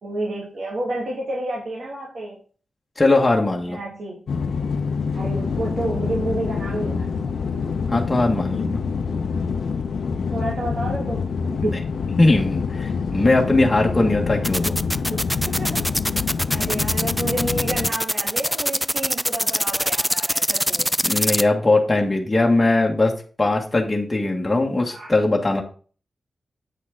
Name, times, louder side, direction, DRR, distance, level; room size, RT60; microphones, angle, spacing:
voice 1, 0.0-2.4 3.7-4.2 5.1-7.5 10.3-11.3 11.6-11.8 15.1-16.2 16.5-20.9 24.9-25.1, right 1 dB, 65° right, -4 dB, 2.8 m, -30 dB
voice 2, 3.0-3.8 7.9-8.8 11.6-11.8 12.2-14.8 21.0-25.6, left 2 dB, 20° left, 0 dB, 1.7 m, -20 dB
sound 1, 4.3-17.9, left 5 dB, 85° left, 0.8 m, -26 dB
sound 2, 14.4-21.4, equal, ahead, 0.4 m, -22 dB
8.9 x 6.3 x 3.7 m, 0.39 s
wide cardioid pair, 115°, 0 cm